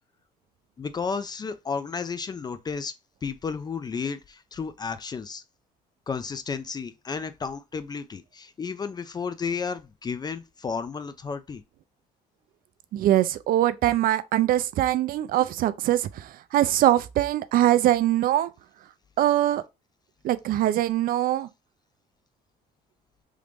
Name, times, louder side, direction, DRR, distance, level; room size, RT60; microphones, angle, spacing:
voice 1, 0.8-2.9 3.2-5.4 6.1-11.6, left 5 dB, 25° left, 0.3 m, -32 dB
voice 2, 12.9-18.5 19.2-19.6 20.2-21.5, right 13 dB, 60° right, 0.4 m, -22 dB
3.1 x 2.5 x 3.4 m
cardioid pair, 110°, 17 cm